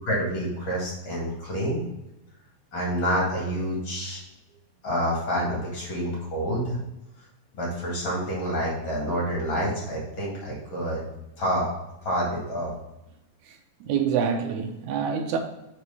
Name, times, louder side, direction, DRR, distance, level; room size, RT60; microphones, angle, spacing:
voice 1, 0.0-1.8 2.7-4.2 4.8-6.8 7.6-11.0 11.4-11.7 12.0-12.7, equal, 40° left, 2.5 m, -28 dB
voice 2, 13.5-15.4, right 7 dB, 80° right, 2.0 m, -27 dB
5.0 x 4.7 x 5.4 m
omnidirectional pair, 3.6 m